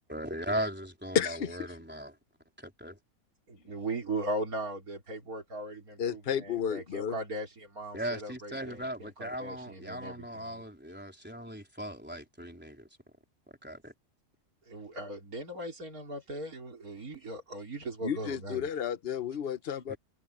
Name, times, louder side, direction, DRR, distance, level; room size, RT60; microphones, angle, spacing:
voice 1, 0.0-2.1 2.6-3.0 7.9-12.9 13.6-13.9 19.9-20.0, equal, 5° right, 4.0 m, -38 dB
voice 2, 1.1-1.6 6.0-7.1 18.0-19.9, left 7 dB, 45° left, 1.1 m, -31 dB
voice 3, 3.5-10.6 14.7-18.7, right 1 dB, 90° right, 4.2 m, -38 dB
omnidirectional pair, 1.5 m